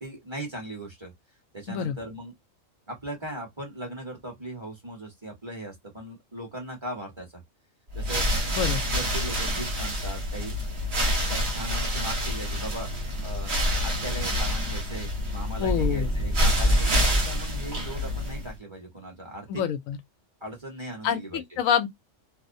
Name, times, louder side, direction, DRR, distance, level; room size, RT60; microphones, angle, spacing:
voice 1, 0.0-1.1 1.5-2.3 2.9-7.4 7.9-8.2 8.9-10.5 11.3-12.9 13.2-13.5 13.8-19.6 20.4-21.4, right 1 dB, 25° right, 1.1 m, -38 dB
sound 1, 7.9-18.6, equal, 55° right, 1.3 m, -27 dB
voice 2, 15.6-16.1 19.5-20.0 21.0-21.9, left 8 dB, 85° left, 1.0 m, -26 dB
sound 2, 15.6-17.2, equal, 25° left, 0.3 m, -25 dB
2.8 x 2.0 x 2.5 m
omnidirectional pair, 1.4 m